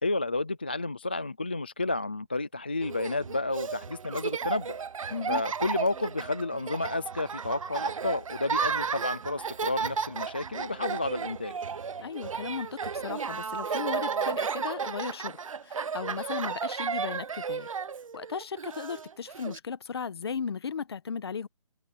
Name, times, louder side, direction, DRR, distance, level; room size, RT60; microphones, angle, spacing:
voice 1, 0.0-4.8 5.3-11.5, left 2 dB, 15° left, 0.4 m, -31 dB
Laughter, 2.8-19.6, right 6 dB, 60° right, 0.8 m, -33 dB
voice 2, 5.1-5.4 12.0-15.4 15.6-17.7 18.1-21.5, left 6 dB, 40° left, 1.4 m, -36 dB
hypercardioid pair, 175°, 19 cm